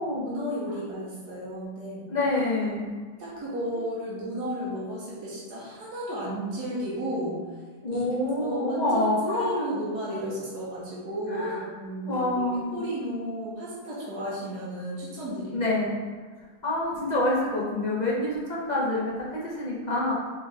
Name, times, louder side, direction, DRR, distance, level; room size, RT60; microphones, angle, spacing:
voice 1, 0.2-2.1 3.2-7.6 7.9-8.0 8.4-15.6, equal, 90° right, -6 dB, 1.5 m, -33 dB
voice 2, 2.1-2.9 7.8-9.6 11.3-11.6 12.0-12.8 15.5-16.0 16.6-20.1, left 2 dB, 35° left, -6 dB, 0.8 m, -27 dB
4.5 x 3.3 x 3.4 m, 1.5 s
omnidirectional pair, 1.7 m